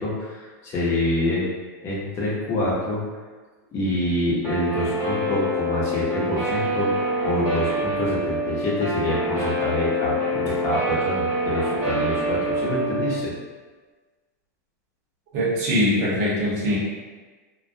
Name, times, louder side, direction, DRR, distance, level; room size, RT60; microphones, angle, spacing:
voice 1, 0.0-1.5 1.8-3.0 3.7-13.3, left 1 dB, 30° left, -6 dB, 0.8 m, -26 dB
Guitar, 4.4-13.1, right 1 dB, 10° right, 0.9 m, -26 dB
voice 2, 15.3-16.8, equal, 55° right, -6 dB, 0.9 m, -22 dB
2.3 x 2.1 x 2.6 m, 1.3 s
supercardioid pair, 150°, 9 cm